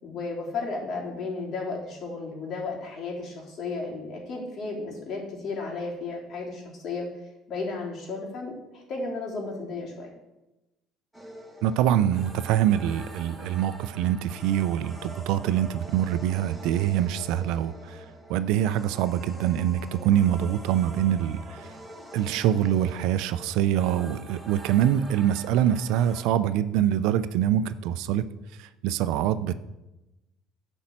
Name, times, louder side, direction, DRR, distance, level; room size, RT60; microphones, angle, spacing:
voice 1, 0.0-7.1 7.5-10.1, left 3 dB, 55° left, -2 dB, 3.7 m, -34 dB
sound 1, 11.1-26.2, right 1 dB, 10° right, 1.7 m, -45 dB
voice 2, 11.6-18.0 18.3-21.6 22.1-28.2 28.8-29.5, right 11 dB, 75° right, 13 dB, 0.5 m, -24 dB
10.0 x 5.4 x 7.4 m, 0.98 s
supercardioid pair, 85°, 0 cm